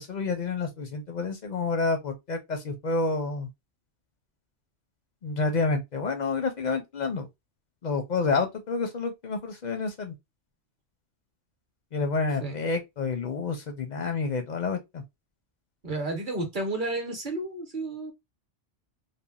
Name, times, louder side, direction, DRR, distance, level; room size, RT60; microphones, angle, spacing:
voice 1, 0.0-3.5 5.2-7.3 7.8-10.1 11.9-15.0, left 4 dB, 55° left, 0.5 m, -29 dB
voice 2, 15.8-18.1, right 2 dB, 45° right, 1.0 m, -31 dB
3.3 x 2.2 x 2.3 m
omnidirectional pair, 1.2 m